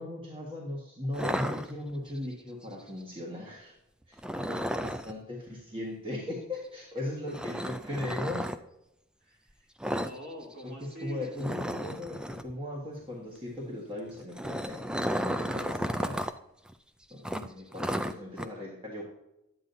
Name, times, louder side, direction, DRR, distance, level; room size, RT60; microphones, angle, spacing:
voice 1, 0.0-3.7 4.1-8.5 11.0-16.2 17.1-19.0, left 1 dB, 25° right, -3 dB, 1.5 m, -38 dB
sound 1, 1.1-2.2 4.2-5.1 7.3-8.6 9.8-10.2 10.4-10.6 10.9-11.0 11.4-12.5 14.1-16.3 16.7-16.8 17.2-18.5, equal, 5° right, 0.3 m, -33 dB
voice 2, 9.2-11.3, equal, 45° right, -2 dB, 2.5 m, -45 dB
10.5 x 8.7 x 2.7 m, 0.86 s
head